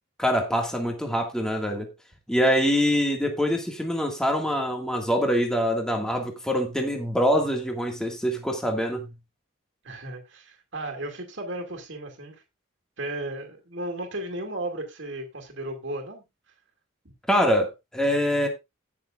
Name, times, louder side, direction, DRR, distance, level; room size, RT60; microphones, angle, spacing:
voice 1, 0.2-1.9 2.3-9.1 17.3-18.5, equal, 5° left, 2 dB, 1.9 m, -24 dB
voice 2, 9.8-12.4 13.0-16.2, right 1 dB, 60° right, 3 dB, 2.4 m, -35 dB
18.0 x 6.8 x 2.5 m, 0.23 s
head